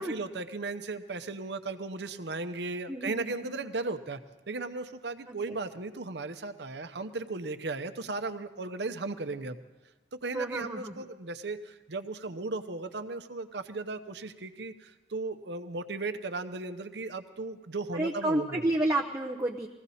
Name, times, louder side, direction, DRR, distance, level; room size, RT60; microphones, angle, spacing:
voice 1, 0.0-4.2 4.5-9.6 10.1-18.6, right 3 dB, 65° right, 10 dB, 0.8 m, -36 dB
voice 2, 2.9-3.6 5.3-5.4 10.3-11.1 17.9-19.7, right 1 dB, 15° right, 0 dB, 0.6 m, -30 dB
20.5 x 15.5 x 4.2 m, 1.1 s
head